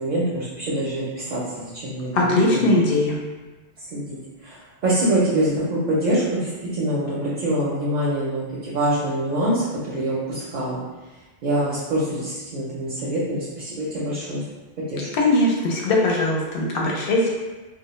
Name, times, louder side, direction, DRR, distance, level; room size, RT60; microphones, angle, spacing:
voice 1, 0.0-2.7 3.8-10.8 11.4-14.4 14.9-15.1, right 1 dB, 55° right, -7 dB, 0.5 m, -25 dB
voice 2, 2.1-3.2 15.1-17.3, left 2 dB, 65° left, -2 dB, 0.7 m, -20 dB
2.1 x 2.0 x 2.9 m, 1.2 s
omnidirectional pair, 1.1 m